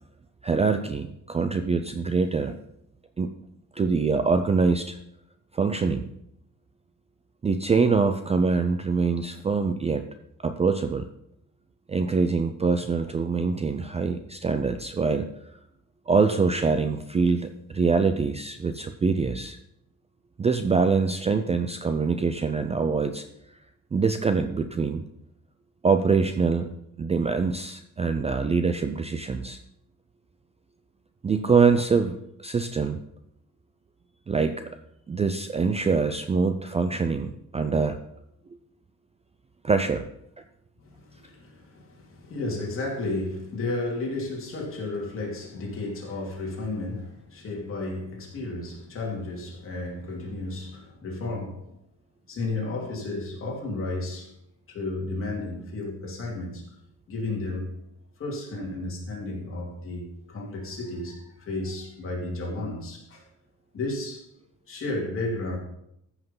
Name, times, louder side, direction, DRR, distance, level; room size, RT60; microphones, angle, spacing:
voice 1, 0.4-2.6 3.2-3.3 3.7-5.0 5.5-6.1 7.4-10.1 10.4-11.1 11.9-15.3 16.1-19.6 20.4-23.3 23.9-25.0 25.8-26.7 27.0-29.6 31.2-33.0 34.3-34.7 35.1-38.0 39.6-40.0, right 4 dB, 20° right, 0.4 m, -24 dB
voice 2, 40.8-51.7 52.3-54.3 54.7-56.8 57.1-57.7 58.2-63.3 63.7-64.3 64.7-65.6, left 2 dB, 40° left, 3.0 m, -33 dB
14.0 x 5.7 x 5.5 m
cardioid pair, 170°, 32 cm